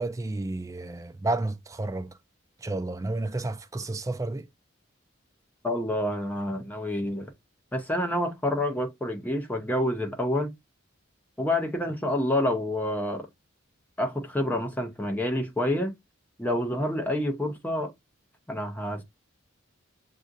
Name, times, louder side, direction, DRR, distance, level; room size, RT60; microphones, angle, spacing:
voice 1, 0.0-2.2 2.6-4.5, right 2 dB, 15° right, 0.4 m, -31 dB
voice 2, 5.6-7.3 7.7-10.5 11.4-13.3 14.0-15.9 16.4-17.9 18.5-19.0, left 1 dB, 10° left, 0.8 m, -28 dB
7.1 x 2.6 x 2.5 m
head